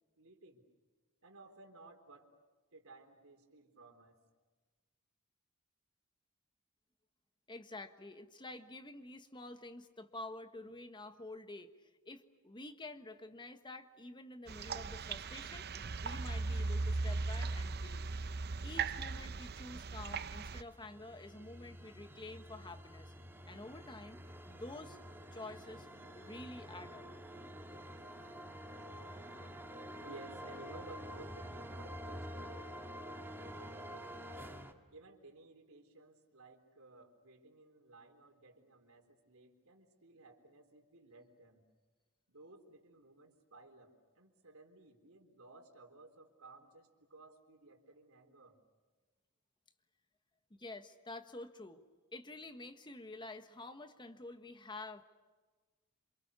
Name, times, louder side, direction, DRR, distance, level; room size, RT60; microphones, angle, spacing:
voice 1, 0.2-0.6 1.2-2.3 2.7-4.2 30.0-32.7 33.4-34.2 34.9-41.7 42.3-48.6, right 2 dB, 70° right, 5 dB, 3.9 m, -57 dB
voice 2, 7.5-15.7 16.0-18.0 18.6-23.1 23.5-24.2 24.5-25.0 25.3-25.9 26.1-27.1 50.5-51.8 52.1-55.0, left 2 dB, 20° left, 8 dB, 1.4 m, -49 dB
sound 1, 14.5-20.6, right 3 dB, 50° right, 0.7 m, -38 dB
sound 2, 20.4-34.7, equal, 10° right, 1.8 m, -48 dB
28.5 x 27.5 x 6.9 m, 1.3 s
head